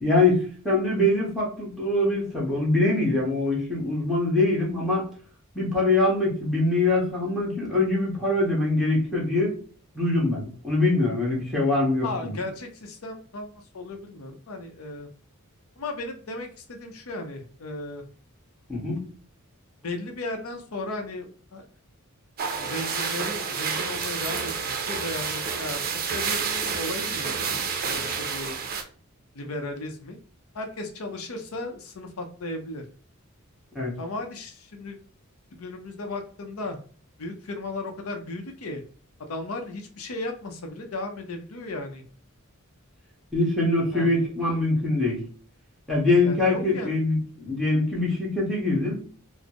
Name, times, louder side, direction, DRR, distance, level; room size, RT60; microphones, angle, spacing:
voice 1, 0.0-5.0 5.5-9.5 9.9-12.4 18.7-19.1 33.7-33.9 43.3-45.2 45.9-49.0, left 2 dB, ahead, -5 dB, 1.2 m, -23 dB
voice 2, 12.0-15.1 15.8-18.0 19.8-21.6 22.6-25.8 26.1-27.5 27.9-28.6 29.3-30.2 30.5-32.8 34.0-35.0 35.5-36.8 37.2-38.8 39.2-42.0 43.9-44.3 46.2-47.0, left 2 dB, 75° left, 4 dB, 0.6 m, -35 dB
sound 1, 22.4-28.8, right 5 dB, 45° right, 0.5 m, -29 dB
4.0 x 2.0 x 2.9 m, 0.43 s
head